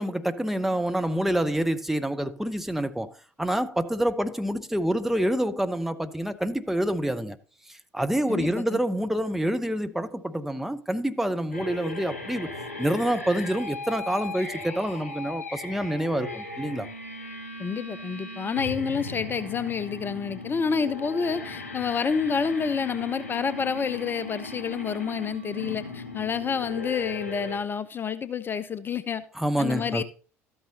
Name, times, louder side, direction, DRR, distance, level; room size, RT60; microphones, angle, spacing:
voice 1, 0.0-7.4 7.7-12.5 12.8-16.9 29.4-30.0, right 1 dB, 5° right, 0.8 m, -27 dB
voice 2, 8.3-8.8 17.6-29.2 29.6-30.0, left 6 dB, 25° left, 0.6 m, -29 dB
sound 1, 11.5-27.6, left 2 dB, 80° left, 2.5 m, -37 dB
13.0 x 8.7 x 2.9 m
figure-of-eight pair, 60°, 8 cm